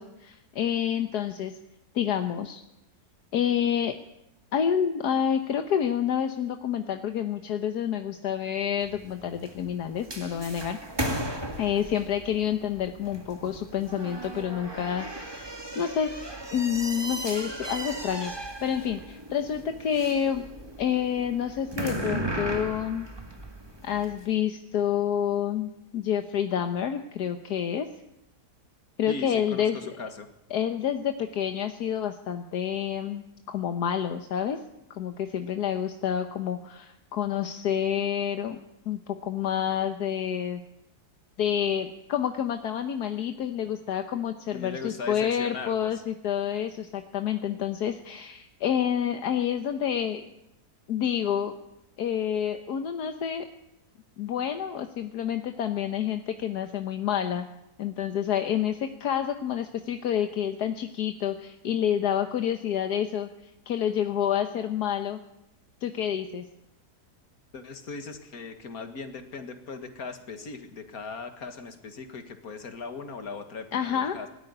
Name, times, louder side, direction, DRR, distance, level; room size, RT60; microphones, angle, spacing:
voice 1, 0.0-1.5 1.9-2.6 3.3-4.0 4.5-10.8 11.6-16.1 16.5-20.5 20.8-23.1 23.8-27.9 29.0-29.9 30.5-34.6 34.9-38.6 38.9-40.6 41.4-50.3 50.9-51.5 52.0-53.5 54.2-57.5 57.8-65.2 65.8-66.5 73.7-74.2, left 9 dB, 75° left, 7 dB, 1.6 m, -28 dB
sound 1, 8.8-24.2, right 1 dB, 15° right, 2.1 m, -36 dB
voice 2, 29.1-30.3 44.5-45.9 67.5-74.3, left 4 dB, 60° left, 7 dB, 2.3 m, -39 dB
20.5 x 13.5 x 9.9 m, 0.88 s
omnidirectional pair, 1.7 m